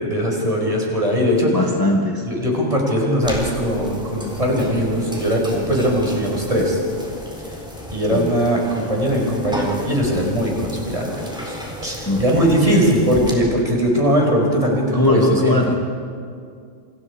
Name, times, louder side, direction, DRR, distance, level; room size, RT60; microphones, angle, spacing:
voice 1, 0.0-1.6 2.3-6.8 7.9-11.6 11.8-15.6, equal, 25° right, -1 dB, 5.2 m, -20 dB
voice 2, 1.5-2.3 8.1-8.3 12.0-13.1 14.9-15.7, left 1 dB, 15° left, 0 dB, 1.5 m, -20 dB
sound 1, 3.2-13.3, equal, 5° right, 3.8 m, -33 dB
28.0 x 26.5 x 5.0 m, 2.3 s
omnidirectional pair, 1.3 m